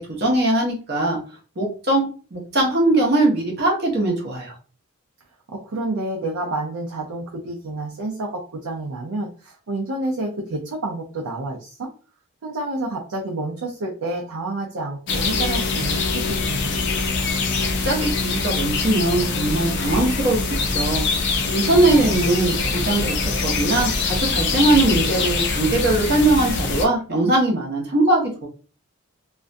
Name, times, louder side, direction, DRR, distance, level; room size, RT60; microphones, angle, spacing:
voice 1, 0.2-1.2 1.6-4.5 17.8-20.4 20.7-21.0 21.5-28.5, right 2 dB, 45° right, -1 dB, 0.7 m, -20 dB
voice 2, 5.5-11.9 12.4-16.9 21.7-22.2, right 2 dB, 85° right, -1 dB, 0.5 m, -29 dB
sound 1, 15.1-26.9, left 3 dB, 50° left, 0.4 m, -23 dB
2.4 x 2.1 x 2.5 m, 0.36 s
head